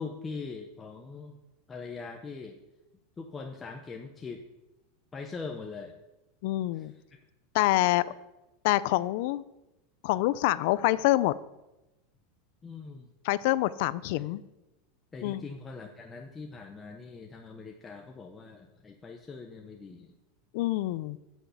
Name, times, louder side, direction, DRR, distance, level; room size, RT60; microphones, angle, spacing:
voice 1, 0.0-1.4 1.7-2.6 3.2-4.5 5.1-6.0 6.7-7.2 7.8-7.9 12.6-13.1 14.1-14.3 15.1-20.1, left 4 dB, 15° left, 2 dB, 0.8 m, -42 dB
voice 2, 6.4-6.9 7.5-8.1 8.6-9.4 10.0-11.4 13.2-14.4 15.2-15.4 20.5-21.2, left 17 dB, 55° left, 18 dB, 0.5 m, -26 dB
10.5 x 6.4 x 8.1 m, 0.98 s
supercardioid pair, 165°, 0 cm